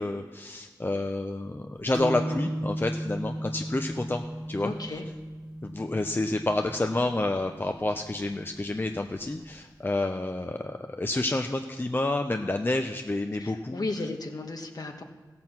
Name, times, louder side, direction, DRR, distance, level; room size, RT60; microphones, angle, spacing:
voice 1, 0.0-4.2 4.5-4.7 5.6-13.8, left 2 dB, 30° left, 5 dB, 0.6 m, -29 dB
sound 1, 1.9-9.4, right 1 dB, 15° right, 1.9 m, -36 dB
voice 2, 4.6-5.1 13.3-15.0, left 2 dB, 55° left, 4 dB, 1.4 m, -34 dB
15.5 x 6.1 x 7.2 m, 1.3 s
wide cardioid pair, 55°, 8 cm